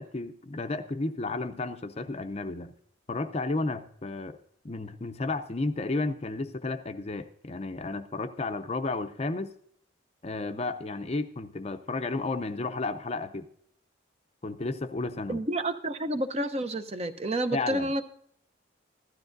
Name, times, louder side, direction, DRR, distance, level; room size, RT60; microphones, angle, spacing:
voice 1, 0.0-2.7 3.1-4.4 4.6-9.5 10.2-13.5 14.4-15.4 17.5-17.9, left 3 dB, 30° left, 9 dB, 0.5 m, -32 dB
voice 2, 15.3-18.0, right 1 dB, 30° right, 9 dB, 0.6 m, -30 dB
15.5 x 12.5 x 2.6 m, 0.66 s
head